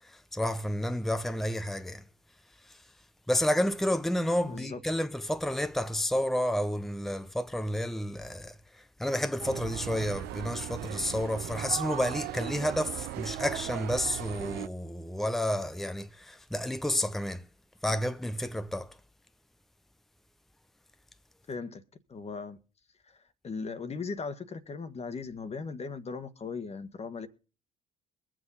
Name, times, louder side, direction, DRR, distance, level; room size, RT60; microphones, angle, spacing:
voice 1, 0.0-2.0 2.6-2.8 3.3-17.4 17.8-19.0, left 1 dB, ahead, 0.9 m, -30 dB
voice 2, 4.4-4.8 21.5-21.8 22.1-22.6 23.0-27.3, left 4 dB, 35° left, 1.6 m, -38 dB
sound 1, 9.4-14.7, right 14 dB, 65° right, 0.7 m, -37 dB
22.5 x 7.7 x 4.1 m
hypercardioid pair, 60°, 18 cm